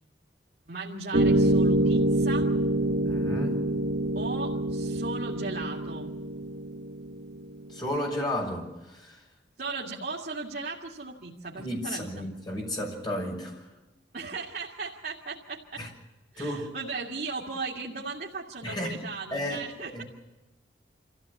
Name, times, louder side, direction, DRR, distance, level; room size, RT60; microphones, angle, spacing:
voice 1, 0.7-2.5 4.1-6.1 9.6-12.2 14.1-15.8 16.3-20.0, right 4 dB, 55° right, -2 dB, 2.3 m, -37 dB
sound 1, 1.1-7.7, right 1 dB, 80° right, 1.3 m, -26 dB
voice 2, 3.0-3.6 7.7-9.2 11.5-13.7 15.8-15.9 16.4-16.7 18.6-19.0 19.3-19.7 19.9-20.0, left 1 dB, 25° left, 0 dB, 6.4 m, -33 dB
26.5 x 15.5 x 8.4 m, 1.1 s
head